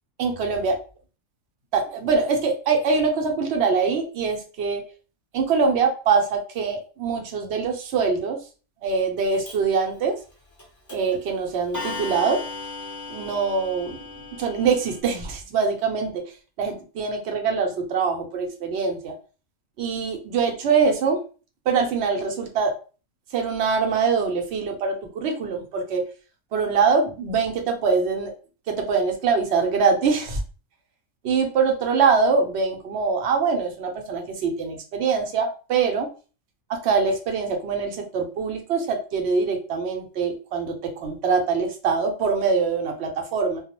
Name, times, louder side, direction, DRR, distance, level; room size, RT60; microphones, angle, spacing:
voice 1, 0.2-0.8 1.7-4.8 5.3-8.4 8.8-10.2 10.9-12.4 13.1-14.0 14.4-16.2 16.6-19.1 19.8-21.2 21.7-22.7 23.3-26.0 26.5-28.3 28.7-30.4 31.2-36.1 36.7-43.6, right 5 dB, 60° right, 4 dB, 0.8 m, -23 dB
Clock, 9.4-9.5 10.6-10.7 10.9-11.2 11.7-15.0, left 3 dB, 25° left, 0.4 m, -36 dB
2.3 x 2.0 x 2.8 m, 0.36 s
omnidirectional pair, 1.4 m